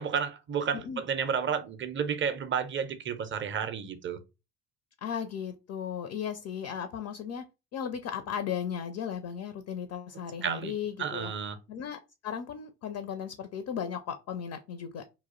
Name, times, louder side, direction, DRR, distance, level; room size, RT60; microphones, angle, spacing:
voice 1, 0.0-4.2 10.4-11.6, right 7 dB, 25° right, 0.5 m, -31 dB
voice 2, 5.0-7.4 7.7-11.3 11.7-15.0, left 8 dB, 35° left, 0.4 m, -36 dB
2.4 x 2.0 x 3.7 m
hypercardioid pair, 50°, 48 cm